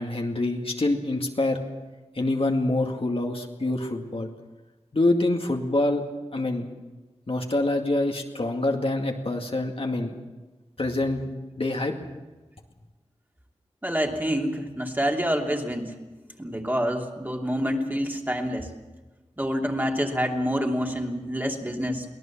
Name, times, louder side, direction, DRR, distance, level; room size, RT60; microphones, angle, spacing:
voice 1, 0.0-1.6 2.2-4.3 4.9-6.0 6.3-6.7 7.3-10.2 10.8-11.9, left 2 dB, 55° left, 2 dB, 2.1 m, -26 dB
voice 2, 13.8-15.9 16.4-18.7 19.4-22.1, equal, 15° right, 1 dB, 2.8 m, -27 dB
23.5 x 17.5 x 7.3 m, 1.2 s
wide cardioid pair, 65°, 12 cm